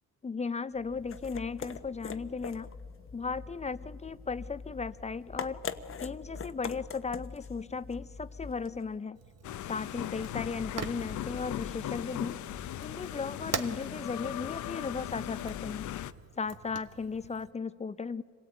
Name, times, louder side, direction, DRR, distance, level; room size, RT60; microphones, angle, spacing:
voice 1, 0.2-2.7 3.1-5.6 6.0-9.2 9.7-12.4 12.8-15.8 16.4-18.2, left 5 dB, 20° left, 0.6 m, -36 dB
sound 1, 0.7-8.9, left 5 dB, 45° left, 1.1 m, -43 dB
Fire, 9.1-17.5, right 6 dB, 55° right, 1.3 m, -44 dB
sound 2, 9.4-16.1, left 12 dB, 75° left, 0.8 m, -38 dB
26.0 x 17.5 x 8.9 m
cardioid pair, 90°, 30 cm